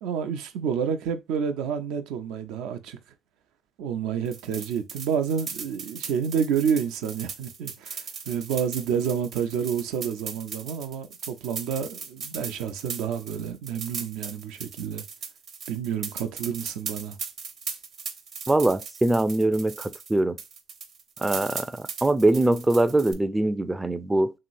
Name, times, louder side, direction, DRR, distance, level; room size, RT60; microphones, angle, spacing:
voice 1, 0.0-3.0 3.8-15.0 15.7-17.2, right 7 dB, 85° right, 0.5 m, -29 dB
sound 1, 4.2-20.1 20.4-23.1, right 6 dB, 55° right, 0.8 m, -38 dB
voice 2, 18.5-20.4 21.2-24.3, right 2 dB, 15° right, 0.3 m, -23 dB
3.1 x 2.9 x 2.5 m
cardioid pair, 95°, 0 cm